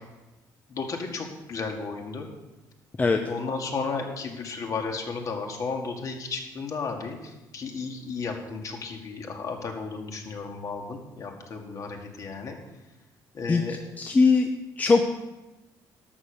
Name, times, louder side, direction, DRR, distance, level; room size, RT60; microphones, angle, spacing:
voice 1, 0.7-2.3 3.3-7.2 7.5-12.6 13.3-13.8, left 4 dB, 45° left, 2 dB, 2.1 m, -33 dB
voice 2, 13.5-14.5 14.8-15.0, left 4 dB, 20° left, 4 dB, 0.7 m, -21 dB
12.5 x 7.1 x 6.5 m, 1.0 s
cardioid pair, 130°, 8 cm